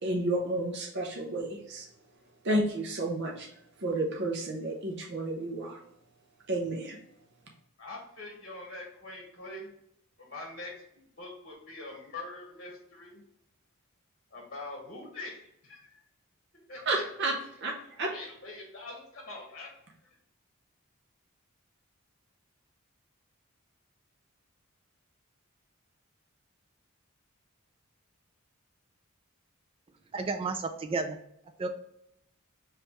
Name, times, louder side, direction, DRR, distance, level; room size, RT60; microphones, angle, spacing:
voice 1, 0.0-1.9 2.4-3.5 3.8-5.8 6.5-7.0 16.9-18.1, right 2 dB, 55° right, 0 dB, 0.7 m, -31 dB
voice 2, 7.8-9.7 10.2-13.2 14.3-15.3 15.6-16.0 16.7-17.0 18.1-19.7, left 2 dB, 45° left, -1 dB, 1.2 m, -43 dB
voice 3, 30.1-31.2 31.6-31.7, right 3 dB, 25° right, 7 dB, 0.3 m, -31 dB
5.2 x 3.2 x 3.0 m, 0.77 s
head